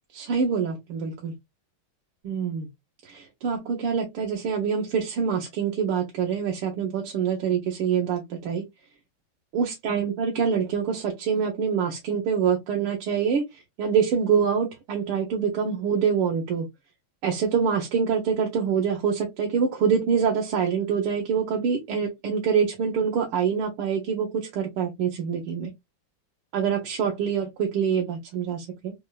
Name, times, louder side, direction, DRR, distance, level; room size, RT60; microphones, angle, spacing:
voice 1, 0.1-1.3 2.2-2.7 3.0-8.6 9.5-16.7 17.2-25.7 26.5-28.9, right 7 dB, 80° right, 1.9 m, -25 dB
4.3 x 3.5 x 2.3 m
omnidirectional pair, 2.4 m